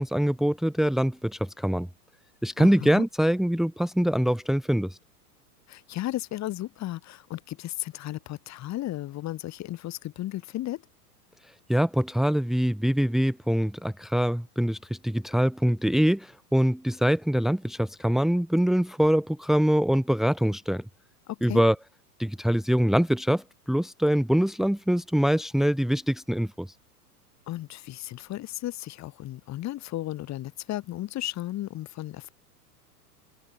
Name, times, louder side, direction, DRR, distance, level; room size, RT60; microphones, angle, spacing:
voice 1, 0.0-1.9 2.4-5.0 11.7-20.8 21.4-21.8 22.2-26.7, equal, ahead, 2.2 m, -24 dB
voice 2, 2.6-3.1 5.7-10.8 21.3-21.6 27.5-32.3, left 15 dB, 35° left, 5.7 m, -34 dB
open air
figure-of-eight pair, 100°, 48 cm